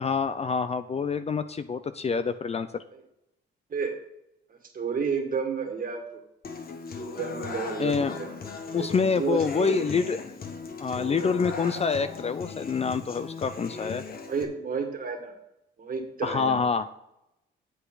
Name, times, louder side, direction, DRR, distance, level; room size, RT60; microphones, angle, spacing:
voice 1, 0.0-2.8 7.8-8.1 8.7-10.3 10.8-14.0 16.2-16.9, left 5 dB, 30° left, 11 dB, 0.5 m, -27 dB
voice 2, 4.5-6.2 7.2-8.4 8.7-9.9 13.8-13.9 14.3-15.4 15.8-16.6, right 5 dB, 45° right, 4 dB, 2.0 m, -31 dB
Human voice / Acoustic guitar, 6.4-14.4, left 4 dB, 50° left, 1.3 m, -38 dB
8.2 x 8.0 x 4.0 m, 0.85 s
cardioid pair, 90°, 20 cm